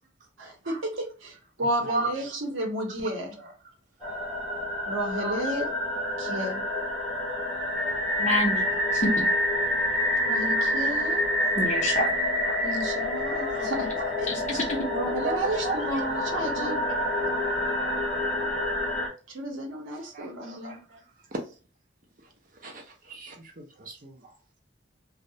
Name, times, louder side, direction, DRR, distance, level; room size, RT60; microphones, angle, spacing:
voice 1, 0.4-1.3 1.6-3.3 4.9-5.7 6.2-6.6 10.3-11.2 12.6-14.3 14.9-16.8 19.3-20.8, right 1 dB, 85° right, 0.7 m, -32 dB
sound 1, 4.0-19.1, left 1 dB, 5° left, 0.9 m, -27 dB
voice 2, 8.2-9.1 11.5-12.1 14.3-14.8, left 1 dB, 35° left, 0.6 m, -27 dB
voice 3, 11.2-11.5 12.4-12.6 13.2-13.7 14.5-14.6 15.2-15.8 16.1-16.8 20.0-21.0 21.3-21.4 22.5-24.3, right 3 dB, 45° right, 0.5 m, -36 dB
2.3 x 2.0 x 2.7 m
head